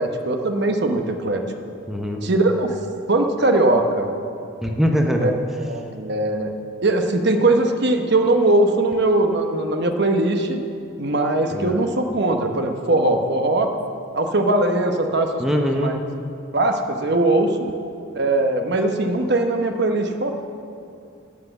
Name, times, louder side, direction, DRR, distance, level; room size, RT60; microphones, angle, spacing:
voice 1, 0.0-1.4 2.2-2.7 3.1-4.1 5.2-5.3 5.6-6.5 6.8-10.6 11.0-13.7 14.1-15.9 16.5-17.6 18.1-20.3, right 2 dB, 55° right, 5 dB, 1.0 m, -20 dB
voice 2, 1.9-2.2 4.6-5.3 11.5-11.8 15.4-15.9, equal, ahead, 2 dB, 0.7 m, -22 dB
12.0 x 7.7 x 8.0 m, 2.6 s
head